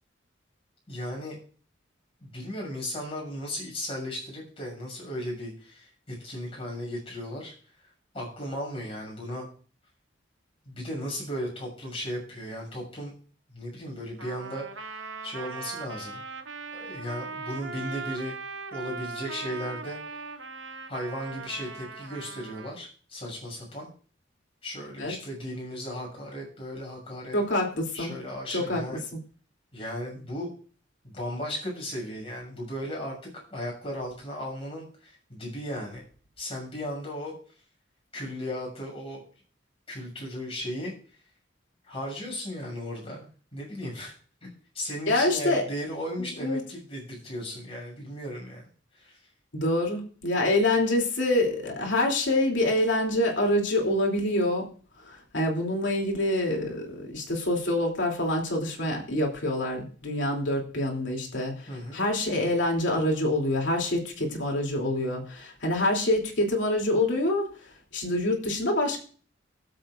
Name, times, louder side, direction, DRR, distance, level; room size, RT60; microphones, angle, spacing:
voice 1, 0.9-1.4 2.2-7.5 8.1-9.5 10.6-13.1 13.5-16.2 16.7-18.3 18.7-20.2 20.9-23.9 24.6-27.4 27.9-29.0 29.7-30.5 31.0-36.0 36.4-37.3 38.1-39.2 39.9-40.9 41.9-44.1 44.4-44.5 44.7-48.6 48.9-49.2 61.7-62.0, equal, 30° left, -2 dB, 6.7 m, -36 dB
Trumpet, 14.2-22.7, right 4 dB, 85° right, 1.1 m, -39 dB
voice 2, 27.3-28.1 28.5-28.8 45.1-45.7 46.4-46.6 49.5-54.7 55.0-67.5 67.9-69.0, left 1 dB, 70° left, 0 dB, 3.1 m, -26 dB
24.0 x 8.0 x 2.6 m, 0.42 s
head